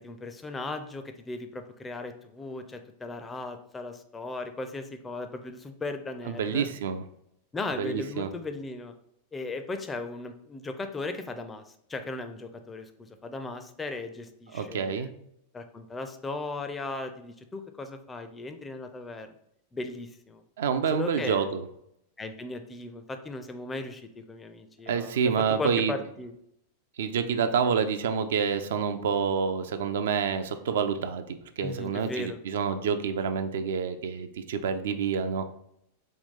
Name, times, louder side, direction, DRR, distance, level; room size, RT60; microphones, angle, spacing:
voice 1, 0.0-6.7 7.5-8.9 9.3-15.1 15.5-19.3 19.7-20.4 20.9-21.5 22.2-26.3 31.6-32.4, left 3 dB, 15° left, 7 dB, 0.4 m, -37 dB
voice 2, 6.3-7.0 7.8-8.3 14.5-15.1 20.6-21.6 24.9-25.9 27.0-31.2 31.6-35.5, right 6 dB, 60° right, 9 dB, 0.3 m, -28 dB
4.1 x 2.2 x 3.6 m, 0.75 s
figure-of-eight pair, 90°, 0 cm